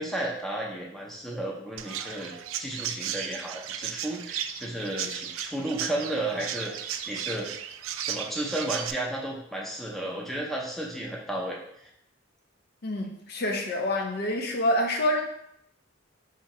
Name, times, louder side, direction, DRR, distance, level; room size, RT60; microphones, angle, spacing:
voice 1, 0.0-2.3 2.6-7.5 8.0-11.6, right 1 dB, ahead, -2 dB, 0.6 m, -33 dB
Chirp tweet, 1.8-8.9, right 9 dB, 80° right, 0.3 m, -35 dB
voice 2, 12.8-15.2, left 1 dB, 50° left, 2 dB, 0.5 m, -27 dB
3.7 x 2.8 x 4.2 m, 0.74 s
head